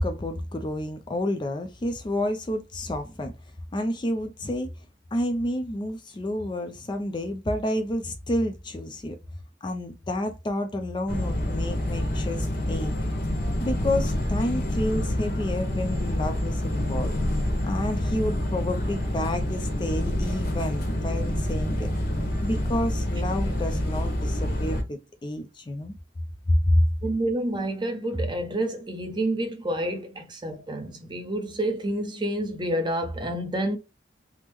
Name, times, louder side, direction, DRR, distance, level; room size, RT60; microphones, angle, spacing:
voice 1, 0.0-3.4 3.7-4.7 5.1-9.2 9.6-13.0 13.6-17.1 17.6-21.9 22.4-25.9 26.5-26.9, left 1 dB, 25° left, 0.4 m, -29 dB
sound 1, 11.1-24.8, left 1 dB, 50° left, 0.9 m, -27 dB
voice 2, 27.0-33.8, right 1 dB, 25° right, 0.6 m, -28 dB
3.5 x 2.0 x 3.0 m
head